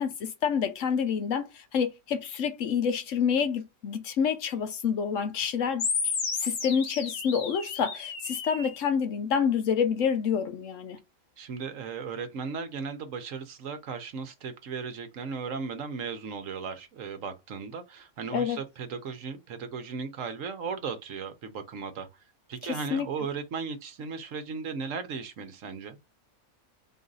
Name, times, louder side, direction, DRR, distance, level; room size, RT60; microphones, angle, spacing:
voice 1, 0.0-5.9 6.4-11.0 18.3-18.6 22.9-23.1, left 7 dB, 65° left, 1.1 m, -28 dB
sound 1, 5.8-8.8, left 5 dB, 90° left, 1.6 m, -32 dB
voice 2, 11.4-22.1 22.5-26.0, right 5 dB, 70° right, 1.2 m, -36 dB
3.9 x 2.6 x 3.8 m
omnidirectional pair, 1.4 m